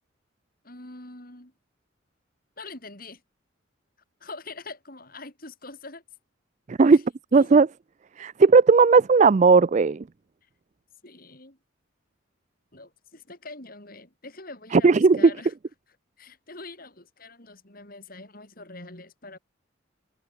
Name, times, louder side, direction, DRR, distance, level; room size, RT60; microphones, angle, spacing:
voice 1, 0.6-1.5 2.6-3.2 4.2-6.0 6.9-7.0 7.3-7.6 11.0-11.6 12.7-15.5 16.2-19.4, left 3 dB, 45° left, 5.8 m, -43 dB
voice 2, 6.7-7.0 7.3-7.7 8.2-10.0 14.7-15.3, right 4 dB, 35° right, 0.4 m, -16 dB
head